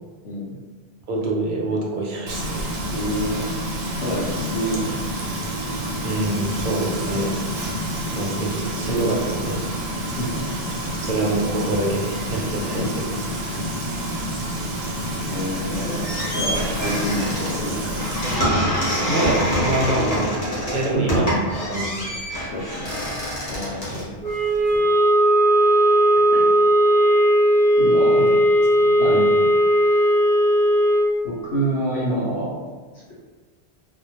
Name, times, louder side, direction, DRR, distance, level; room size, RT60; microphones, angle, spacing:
voice 1, 0.2-0.6 2.8-3.5 4.0-5.2 10.2-10.4 13.5-13.6 15.3-18.0 20.9-21.0 22.5-23.2 23.5-24.1 26.3-26.5 27.8-28.2 29.0-29.2 31.2-32.6, right 1 dB, 85° left, -8 dB, 0.8 m, -28 dB
voice 2, 1.1-2.7 6.0-7.3 8.1-9.6 10.8-13.1 19.1-20.3 20.7-22.3 23.9-24.0 28.2-28.3 28.8-29.4, right 2 dB, 60° right, -2 dB, 0.6 m, -25 dB
Frying (food), 2.3-18.4, equal, 90° right, 0.8 m, -28 dB
sound 1, 15.7-24.8, equal, 40° left, 0.7 m, -26 dB
sound 2, 24.2-31.2, equal, 10° left, 0.4 m, -17 dB
2.1 x 2.1 x 2.8 m, 1.4 s
omnidirectional pair, 1.1 m